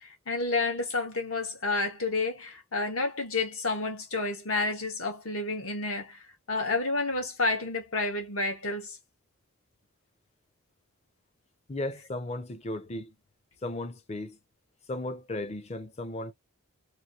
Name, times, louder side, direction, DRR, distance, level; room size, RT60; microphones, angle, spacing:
voice 1, 0.0-6.2 6.5-9.0, left 3 dB, 75° left, 1.4 m, -30 dB
voice 2, 11.7-13.1 13.6-14.4 14.9-16.3, left 2 dB, 30° left, 0.5 m, -35 dB
3.1 x 2.6 x 2.7 m
head